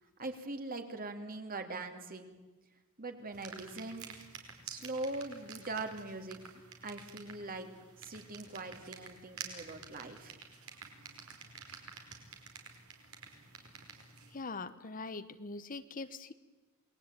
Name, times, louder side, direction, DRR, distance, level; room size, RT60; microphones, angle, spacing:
voice 1, 0.2-2.3 3.0-4.1 4.7-6.4 6.8-7.7 8.0-10.4, right 2 dB, 40° right, 6 dB, 2.8 m, -41 dB
sound 1, 3.3-14.4, right 6 dB, 75° right, 4.7 m, -50 dB
voice 2, 14.3-16.3, left 3 dB, 40° left, 12 dB, 1.1 m, -42 dB
28.0 x 20.5 x 9.0 m, 1.2 s
head